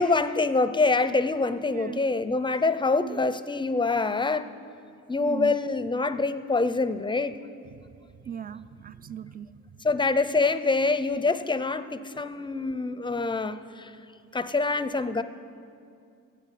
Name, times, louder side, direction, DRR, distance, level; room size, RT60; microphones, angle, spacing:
voice 1, 0.0-4.5 5.1-7.3 9.8-13.9 14.3-15.2, left 3 dB, 15° left, 13 dB, 0.6 m, -25 dB
voice 2, 1.7-2.1 2.9-3.2 5.2-5.6 7.7-7.8 8.3-9.5, right 9 dB, 30° right, 14 dB, 0.4 m, -38 dB
14.0 x 8.5 x 8.2 m, 2.5 s
cardioid pair, 90°, 30 cm